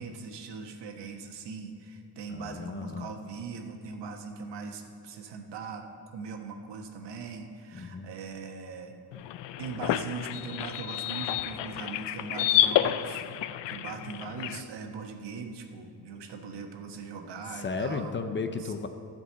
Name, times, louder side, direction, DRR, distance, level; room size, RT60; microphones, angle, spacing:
voice 1, 0.0-8.9 9.6-18.1 18.6-18.7, right 5 dB, 75° right, 4 dB, 1.3 m, -40 dB
voice 2, 2.3-3.1 7.7-8.1 17.5-18.9, left 4 dB, 30° left, 7 dB, 0.5 m, -34 dB
sound 1, 9.1-14.6, left 12 dB, 85° left, 0.5 m, -29 dB
13.0 x 5.3 x 7.9 m, 2.4 s
cardioid pair, 140°, 42 cm